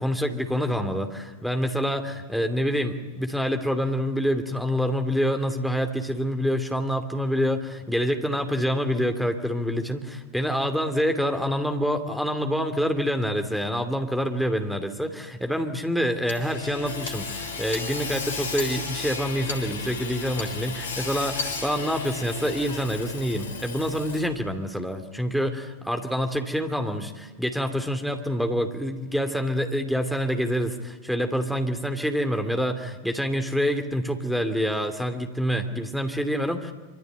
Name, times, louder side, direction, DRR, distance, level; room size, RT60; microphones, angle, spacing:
voice 1, 0.0-36.7, equal, ahead, 6 dB, 2.8 m, -26 dB
Hammer / Sawing, 16.3-24.5, left 4 dB, 65° left, 3.6 m, -34 dB
25.5 x 25.0 x 9.2 m, 1.3 s
figure-of-eight pair, 90°, 0 cm